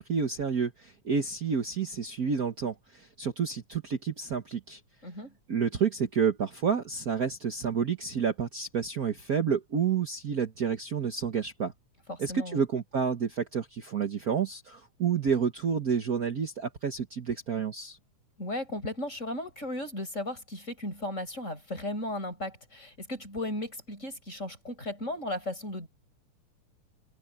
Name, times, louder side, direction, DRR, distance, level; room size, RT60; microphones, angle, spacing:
voice 1, 0.0-4.8 5.5-11.7 12.2-18.0, right 6 dB, 65° right, 0.9 m, -29 dB
voice 2, 5.0-5.3 12.1-12.6 18.4-25.9, left 1 dB, 20° left, 7.7 m, -36 dB
omnidirectional pair, 3.5 m